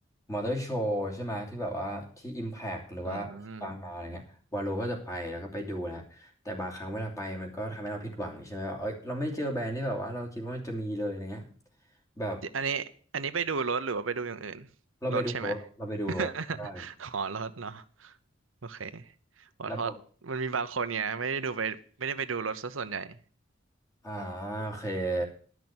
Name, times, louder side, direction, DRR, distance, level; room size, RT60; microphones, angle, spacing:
voice 1, 0.3-11.5 12.2-12.4 15.0-16.3 16.6-16.8 19.6-20.0 24.0-25.2, equal, 15° left, 2.9 m, -34 dB
voice 2, 3.0-3.7 12.5-14.7 15.1-15.6 16.2-18.1 18.6-19.1 19.6-19.9 20.2-23.2, right 5 dB, 85° right, 0.9 m, -33 dB
12.5 x 6.2 x 8.7 m
head